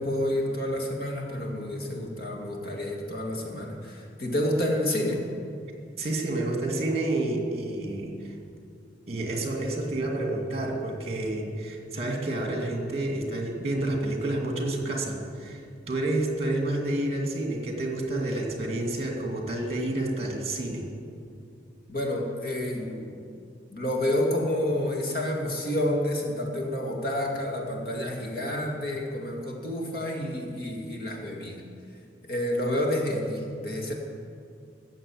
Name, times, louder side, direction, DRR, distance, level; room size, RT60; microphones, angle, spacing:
voice 1, 0.0-5.3 21.9-23.1 23.7-31.6 32.2-33.9, left 1 dB, 55° left, 0 dB, 2.3 m, -29 dB
voice 2, 6.0-8.4 9.1-20.9, right 2 dB, 35° right, 1 dB, 2.2 m, -29 dB
15.0 x 7.0 x 8.7 m, 2.4 s
head